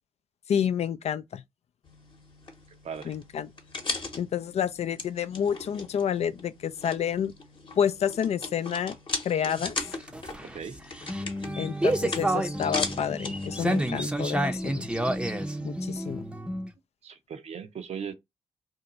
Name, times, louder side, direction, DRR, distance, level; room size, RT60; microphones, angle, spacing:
voice 1, 0.5-1.4 3.0-3.5 4.1-7.3 7.8-8.9 9.2-9.8 11.6-14.9 15.6-16.2, left 8 dB, 60° left, 0.4 m, -29 dB
sound 1, 1.8-13.9, left 3 dB, 40° left, 0.9 m, -38 dB
voice 2, 2.7-3.1 9.4-9.6 10.4-10.8 17.0-18.1, right 7 dB, 60° right, 0.6 m, -38 dB
sound 2, 9.9-16.7, right 1 dB, 10° right, 0.6 m, -30 dB
2.7 x 2.2 x 3.9 m
supercardioid pair, 50°, 13 cm